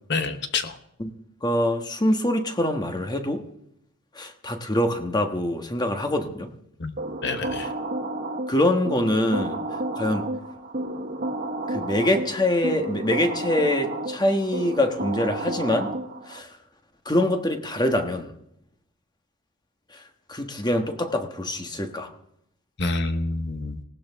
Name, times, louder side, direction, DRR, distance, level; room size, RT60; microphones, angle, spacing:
voice 1, 0.1-0.8 6.8-7.0 7.2-7.7 22.8-23.8, left 3 dB, 55° left, 1.1 m, -27 dB
voice 2, 1.4-3.4 4.1-6.5 8.5-9.6 9.9-10.3 11.7-15.9 16.3-16.5 17.0-18.3 20.3-22.1, left 1 dB, 20° left, 1.3 m, -24 dB
sound 1, 7.0-16.4, right 2 dB, 45° right, 1.3 m, -31 dB
19.0 x 17.0 x 3.6 m
head